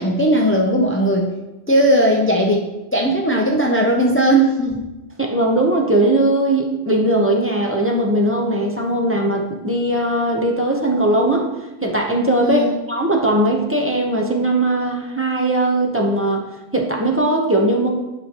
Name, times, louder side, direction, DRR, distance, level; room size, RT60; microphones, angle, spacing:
voice 1, 0.0-1.3 1.7-2.7 2.9-4.9 12.4-12.8, right 1 dB, 20° left, -1 dB, 0.3 m, -17 dB
voice 2, 5.3-11.5 11.8-16.4 16.7-17.9, right 1 dB, 15° right, -1 dB, 0.7 m, -19 dB
10.5 x 5.2 x 3.0 m, 1.0 s
omnidirectional pair, 1.2 m